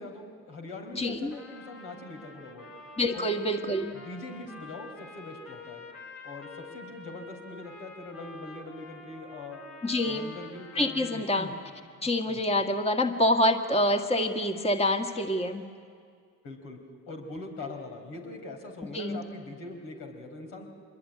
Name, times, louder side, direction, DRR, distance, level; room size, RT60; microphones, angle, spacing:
voice 1, 0.0-2.7 3.1-3.4 3.9-5.8 6.2-9.6 10.0-11.5 12.3-12.4 16.4-16.8 17.1-20.7, left 2 dB, 75° left, 2 dB, 4.6 m, -42 dB
voice 2, 0.9-1.3 3.0-3.9 9.8-10.3 10.8-11.5 12.0-15.6 18.9-19.3, left 1 dB, 20° left, 4 dB, 1.8 m, -26 dB
Trumpet, 1.3-11.7, left 3 dB, 50° left, 5.3 m, -48 dB
26.0 x 21.5 x 9.8 m, 2.1 s
hypercardioid pair, 65°, 34 cm